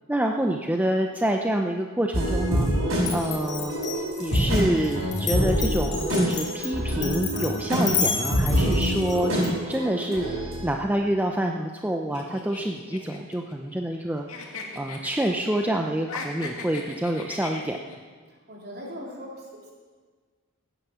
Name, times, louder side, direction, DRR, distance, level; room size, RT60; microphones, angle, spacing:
voice 1, 0.1-2.7 3.1-3.7 4.2-14.3 14.8-17.8, right 1 dB, 5° right, 2 dB, 0.6 m, -27 dB
sound 1, 2.1-10.7, equal, 65° right, 6.0 m, -26 dB
Glass, 3.0-9.5, left 6 dB, 50° left, 2.4 m, -31 dB
sound 2, 12.1-14.0 14.3-15.7 16.0-18.0, left 4 dB, 65° left, 2.4 m, -38 dB
voice 2, 18.3-19.7, equal, 45° right, -3 dB, 4.0 m, -40 dB
16.0 x 9.8 x 7.1 m, 1.5 s
head